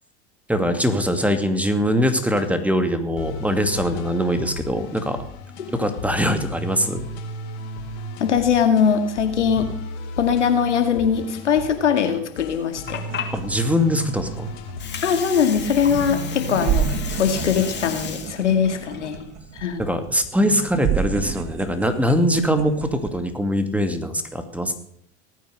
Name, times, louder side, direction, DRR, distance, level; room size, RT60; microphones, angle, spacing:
voice 1, 0.5-5.2 5.7-7.0 13.3-14.5 19.8-24.7, equal, 5° right, 8 dB, 2.4 m, -22 dB
sound 1, 2.0-2.4 3.2-17.9, left 1 dB, 70° left, 3.8 m, -35 dB
voice 2, 8.2-9.7 10.2-13.0 15.0-16.9 17.2-19.2 19.6-19.8, left 7 dB, 90° left, 7 dB, 2.2 m, -21 dB
Water, 12.6-20.5, left 7 dB, 30° left, 2.9 m, -36 dB
sound 2, 13.0-23.2, right 7 dB, 50° right, 2.2 m, -30 dB
18.5 x 9.4 x 6.6 m, 0.68 s
hypercardioid pair, 80°, 35 cm